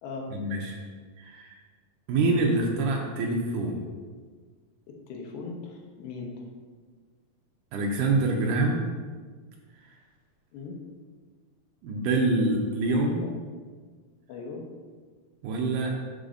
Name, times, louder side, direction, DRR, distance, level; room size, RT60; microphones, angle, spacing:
voice 1, 0.3-0.8 1.2-1.6 2.1-3.8 7.7-8.8 11.8-13.3 15.4-16.0, right 2 dB, 90° right, 0 dB, 1.8 m, -26 dB
voice 2, 4.9-6.3 8.5-8.7 10.5-10.7 13.2-13.3 14.3-14.6, left 4 dB, 80° left, 0 dB, 2.8 m, -39 dB
12.0 x 4.1 x 2.5 m, 1.5 s
omnidirectional pair, 4.3 m